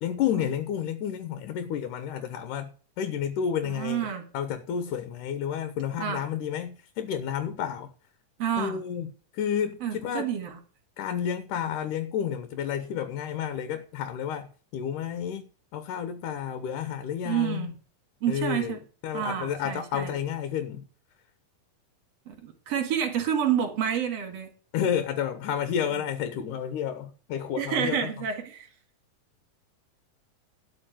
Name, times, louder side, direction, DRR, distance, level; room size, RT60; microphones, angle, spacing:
voice 1, 0.0-4.1 4.3-7.9 8.6-10.3 11.0-17.7 18.3-20.9 24.7-28.1, left 8 dB, 70° left, 2.4 m, -31 dB
voice 2, 3.6-4.2 6.0-6.2 8.4-8.8 9.8-10.6 17.2-17.7 18.2-18.8 19.1-20.1 22.3-24.5 25.9-26.0 27.6-28.7, right 9 dB, 50° right, 3.1 m, -29 dB
12.5 x 5.3 x 9.1 m
omnidirectional pair, 4.0 m